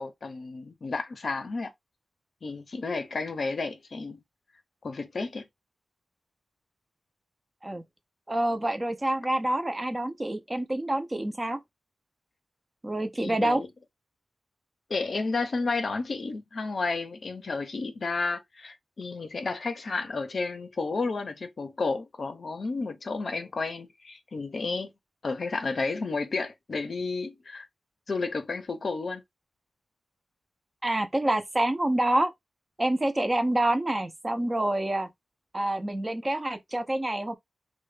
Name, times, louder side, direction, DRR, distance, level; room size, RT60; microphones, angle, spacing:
voice 1, 0.0-1.7 2.4-4.2 4.8-5.5 13.2-13.7 14.9-24.9 25.2-27.7 28.1-29.2, left 3 dB, 55° left, 0.5 m, -32 dB
voice 2, 8.3-11.6 12.8-13.6 30.8-32.3 32.8-35.1 35.5-37.3, right 1 dB, 20° right, 0.4 m, -27 dB
3.1 x 2.2 x 3.1 m
wide cardioid pair, 130°, 0 cm